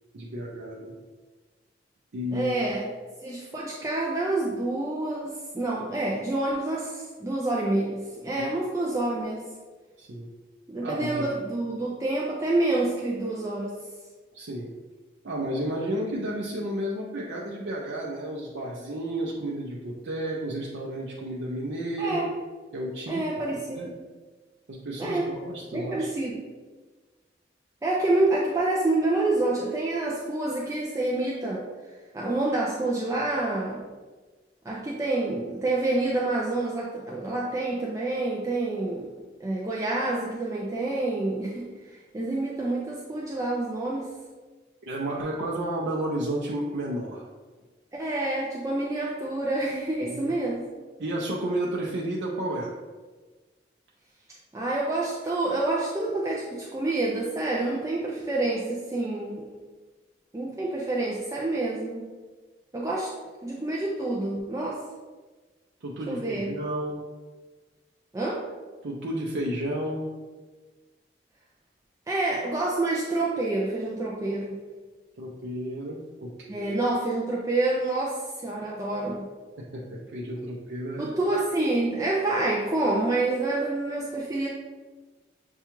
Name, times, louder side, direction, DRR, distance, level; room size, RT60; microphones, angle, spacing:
voice 1, 0.1-0.9 2.1-2.5 8.4-8.5 10.0-10.3 10.8-11.3 14.3-14.7 15.2-22.3 22.7-23.3 23.8-23.9 24.7-26.1 44.8-47.3 50.1-50.3 51.0-52.7 65.8-67.0 68.8-70.1 75.2-76.7 79.6-81.1, right 1 dB, 80° right, -4 dB, 0.5 m, -32 dB
voice 2, 2.3-2.9 3.2-9.4 10.7-13.8 22.0-22.3 23.1-23.9 25.0-25.3 25.7-26.4 27.8-31.6 32.1-33.8 34.7-39.1 39.4-44.1 47.9-50.7 54.5-59.5 60.3-62.1 62.7-63.1 63.4-64.8 66.1-66.6 68.1-68.4 72.1-74.6 76.5-79.3 81.0-84.5, right 2 dB, 15° right, -4 dB, 0.4 m, -28 dB
6.8 x 2.3 x 3.0 m, 1.3 s
head